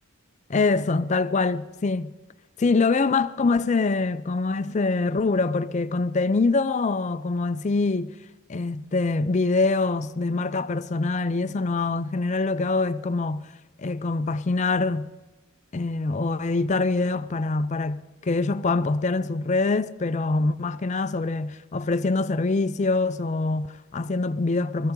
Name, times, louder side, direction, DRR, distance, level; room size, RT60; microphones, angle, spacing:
voice 1, 0.5-2.1 2.6-8.1 8.5-13.5 13.8-15.1 15.7-24.9, left 3 dB, 35° left, 0.4 m, -24 dB
18.5 x 14.0 x 3.8 m
head